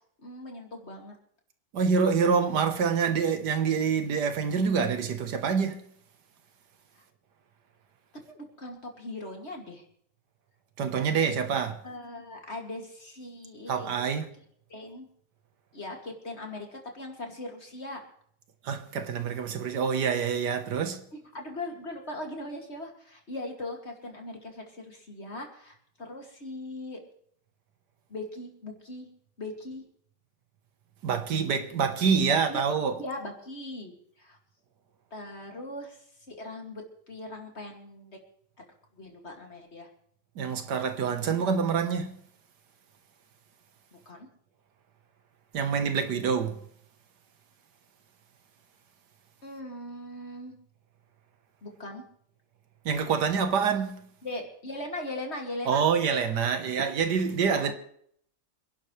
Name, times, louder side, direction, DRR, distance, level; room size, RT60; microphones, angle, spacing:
voice 1, 0.2-1.1 6.9-7.0 8.3-9.8 11.8-13.9 14.7-15.1 15.7-18.0 21.1-27.0 28.1-29.1 29.4-29.8 32.3-32.6 33.0-34.4 35.1-38.2 38.6-38.7 38.9-39.9 43.9-44.3 49.4-50.5 51.6-52.0 54.2-55.8 57.5-57.7, left 2 dB, 40° left, 2.7 m, -40 dB
voice 2, 1.7-5.8 10.8-11.8 13.7-14.3 18.6-21.0 31.0-32.9 40.4-42.2 45.5-46.6 52.8-54.1 55.6-57.7, right 6 dB, 80° right, 1.8 m, -26 dB
26.5 x 11.5 x 3.3 m
omnidirectional pair, 1.8 m